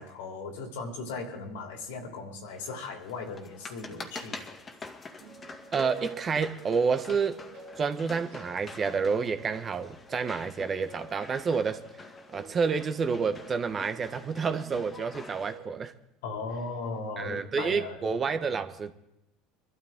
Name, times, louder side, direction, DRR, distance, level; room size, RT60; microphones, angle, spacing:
voice 1, 0.0-4.6 16.2-18.0, left 4 dB, 75° left, 3.0 m, -37 dB
sound 1, 2.5-15.6, left 3 dB, 30° left, 2.0 m, -46 dB
sound 2, 5.2-15.9, right 5 dB, 70° right, 2.1 m, -49 dB
voice 2, 5.7-7.4 7.7-11.8 12.3-15.9 17.2-18.9, right 5 dB, 35° right, 1.3 m, -29 dB
24.5 x 12.5 x 3.8 m
hypercardioid pair, 80°, 0 cm